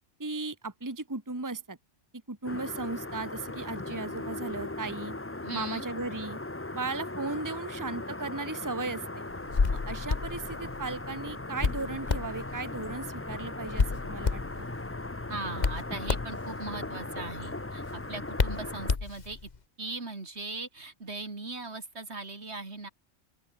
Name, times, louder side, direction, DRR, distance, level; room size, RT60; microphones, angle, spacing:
voice 1, 0.2-1.8 2.3-5.1 5.5-6.4 6.7-9.2 9.7-14.7, right 3 dB, 15° right, 1.6 m, -36 dB
sound 1, 2.4-19.0, left 2 dB, 15° left, 0.8 m, -38 dB
voice 2, 5.4-5.9 15.3-19.5 19.8-22.9, right 3 dB, 65° right, 3.2 m, -39 dB
Hands, 9.3-19.6, left 4 dB, 40° left, 1.4 m, -32 dB
open air
omnidirectional pair, 1.2 m